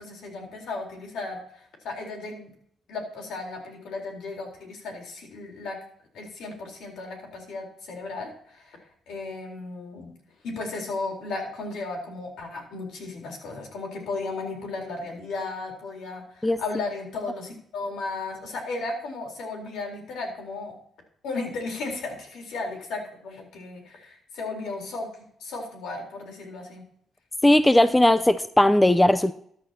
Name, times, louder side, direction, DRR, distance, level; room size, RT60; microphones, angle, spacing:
voice 1, 0.0-2.5 2.9-5.8 6.1-8.8 9.1-10.1 10.4-20.8 21.2-25.1 25.4-26.8, left 3 dB, 80° left, 1 dB, 3.8 m, -35 dB
voice 2, 27.4-29.3, left 1 dB, 10° left, 12 dB, 0.6 m, -18 dB
13.5 x 11.0 x 2.9 m, 0.65 s
cardioid pair, 90°, 0 cm